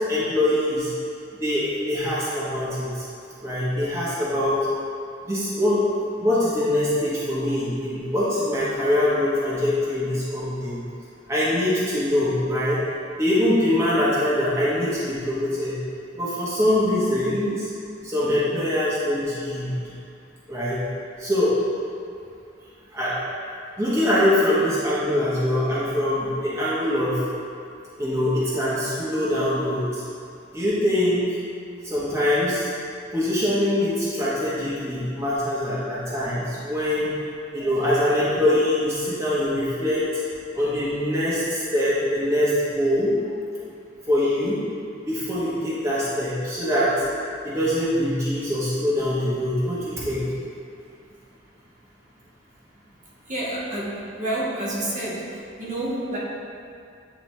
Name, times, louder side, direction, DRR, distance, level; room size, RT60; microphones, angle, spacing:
voice 1, 0.1-0.9 1.4-3.0 3.4-4.6 5.3-5.8 6.2-10.8 11.3-12.8 13.2-15.8 16.1-17.7 18.0-19.8 20.5-20.8 21.2-21.5 22.9-23.1 23.8-27.2 28.0-30.0 30.5-31.2 31.8-32.7 33.1-37.1 37.5-40.0 40.5-43.1 44.1-44.6 45.0-46.9 47.4-50.2, left 1 dB, 15° right, -10 dB, 1.0 m, -23 dB
voice 2, 53.3-55.1 55.6-56.2, right 1 dB, 45° right, -7 dB, 1.4 m, -28 dB
9.0 x 3.9 x 3.2 m, 2.5 s
head